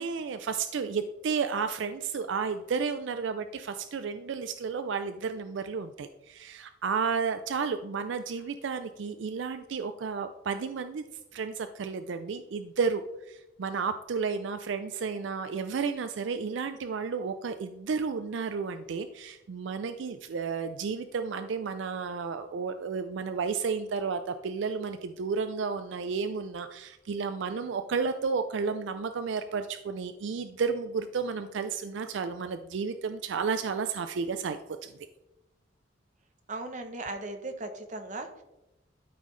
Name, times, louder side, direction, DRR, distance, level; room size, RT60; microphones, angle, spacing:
voice 1, 0.0-11.0 11.3-13.0 13.3-34.9, right 5 dB, 70° right, 9 dB, 0.4 m, -32 dB
voice 2, 36.5-38.4, right 2 dB, 40° right, 6 dB, 0.8 m, -37 dB
12.5 x 5.4 x 3.2 m, 0.97 s
head